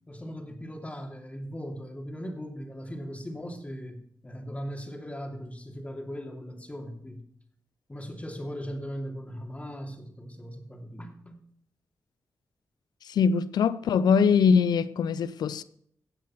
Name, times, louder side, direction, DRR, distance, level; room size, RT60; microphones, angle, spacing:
voice 1, 0.0-7.3 7.9-11.4, equal, 20° left, 2.8 m, -39 dB
voice 2, 13.1-15.6, left 6 dB, 90° left, 0.6 m, -22 dB
16.5 x 7.5 x 5.9 m
cardioid pair, 65°, 7 cm